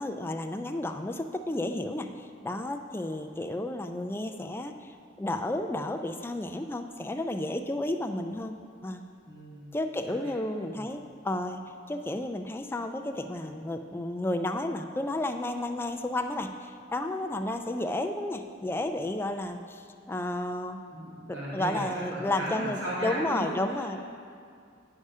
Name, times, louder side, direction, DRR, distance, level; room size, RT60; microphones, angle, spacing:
voice 1, 0.0-8.5 8.8-9.0 9.7-11.6 11.9-20.8 21.5-24.1, left 1 dB, 10° left, 5 dB, 0.3 m, -32 dB
voice 2, 9.2-9.8 10.2-10.3 10.7-10.8 20.0-20.1 20.9-23.5, equal, 75° right, -7 dB, 2.2 m, -35 dB
9.7 x 4.8 x 5.5 m, 2.3 s
head